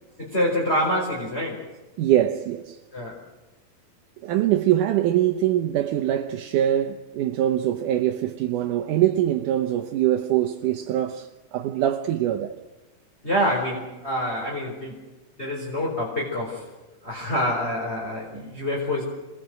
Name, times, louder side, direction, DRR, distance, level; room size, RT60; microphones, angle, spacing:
voice 1, 0.2-1.6 2.9-3.2 13.2-15.0 15.4-16.7 17.0-19.0, equal, 15° left, 4.8 m, -26 dB
voice 2, 2.0-2.8 4.2-12.6, right 12 dB, 70° right, 2.2 m, -23 dB
28.0 x 21.0 x 7.8 m
omnidirectional pair, 4.4 m